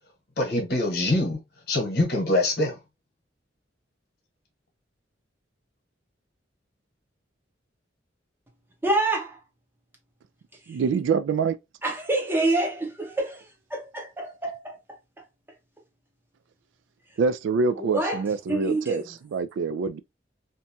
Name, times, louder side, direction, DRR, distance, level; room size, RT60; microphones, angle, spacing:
voice 1, 0.4-1.4 1.7-2.8, left 1 dB, 55° left, 1.1 m, -24 dB
voice 2, 8.8-9.4 11.8-13.4 13.7-14.8 17.8-18.2 18.5-19.1, right 2 dB, 10° right, 0.6 m, -27 dB
voice 3, 10.7-11.6 17.2-20.0, right 5 dB, 80° right, 0.3 m, -25 dB
2.6 x 2.2 x 2.7 m
head